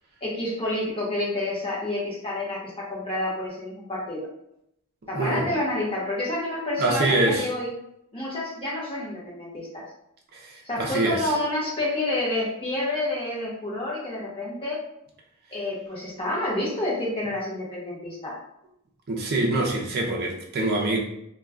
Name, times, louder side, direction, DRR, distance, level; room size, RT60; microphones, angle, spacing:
voice 1, 0.2-4.2 5.1-7.7 8.1-9.8 10.6-14.8 15.5-18.4, left 1 dB, 25° left, -6 dB, 0.9 m, -29 dB
voice 2, 5.1-5.5 6.8-7.5 10.3-11.3 19.1-21.0, right 2 dB, 45° right, -1 dB, 0.4 m, -25 dB
2.2 x 2.2 x 3.5 m, 0.78 s
head